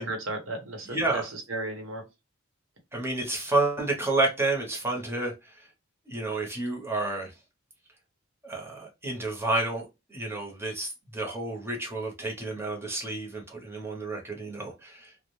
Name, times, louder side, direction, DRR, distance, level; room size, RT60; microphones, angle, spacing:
voice 1, 0.0-2.0, right 2 dB, 65° right, 3 dB, 0.9 m, -35 dB
voice 2, 0.9-1.3 2.9-5.7 6.1-7.3 8.4-15.1, right 2 dB, 10° right, -1 dB, 0.7 m, -30 dB
2.3 x 2.1 x 3.1 m, 0.24 s
head